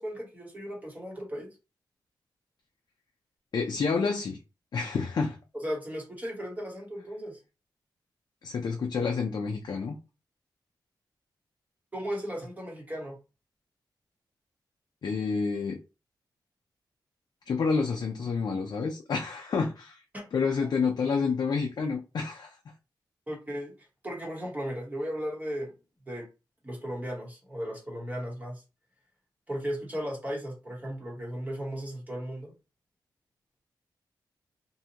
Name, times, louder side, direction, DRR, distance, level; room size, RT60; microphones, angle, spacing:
voice 1, 0.0-1.5 5.5-7.4 11.9-13.2 20.1-20.3 23.3-23.7 24.0-25.7 26.1-26.3 26.6-28.6 29.5-32.5, equal, 20° right, 0.9 m, -36 dB
voice 2, 3.5-4.4 4.7-5.4 8.4-10.0 15.0-15.8 17.5-20.0 20.3-22.6, left 5 dB, 60° left, 0.4 m, -29 dB
2.6 x 2.1 x 2.8 m
wide cardioid pair, 95°, 8 cm